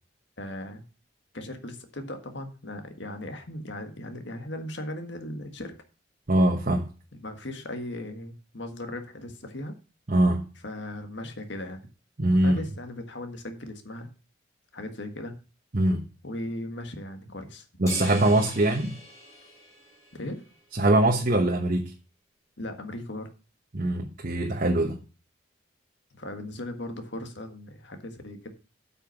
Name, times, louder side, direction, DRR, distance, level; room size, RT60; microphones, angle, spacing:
voice 1, 0.4-0.8 1.3-5.7 7.1-9.7 10.6-11.9 12.4-14.1 14.7-15.4 16.2-17.7 20.1-20.4 22.6-23.3 26.1-28.5, left 1 dB, 65° left, 6 dB, 1.7 m, -37 dB
voice 2, 6.3-6.9 10.1-10.5 12.2-12.6 15.7-16.1 17.8-19.0 20.7-21.9 23.7-25.0, right 1 dB, 45° right, 2 dB, 1.1 m, -23 dB
sound 1, 17.9-20.6, left 1 dB, 15° left, 3.3 m, -43 dB
8.7 x 5.8 x 5.9 m, 0.34 s
head